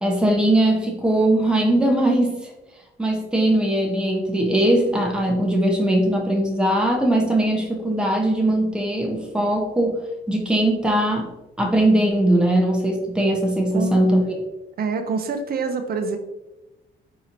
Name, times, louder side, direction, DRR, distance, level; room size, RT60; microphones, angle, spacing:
voice 1, 0.0-2.3 3.0-10.0 10.3-11.3 11.6-14.3, right 1 dB, 5° right, 0 dB, 0.7 m, -20 dB
voice 2, 14.8-16.2, right 5 dB, 50° right, 7 dB, 0.5 m, -26 dB
4.1 x 2.9 x 2.5 m, 0.99 s
cardioid pair, 90°, 20 cm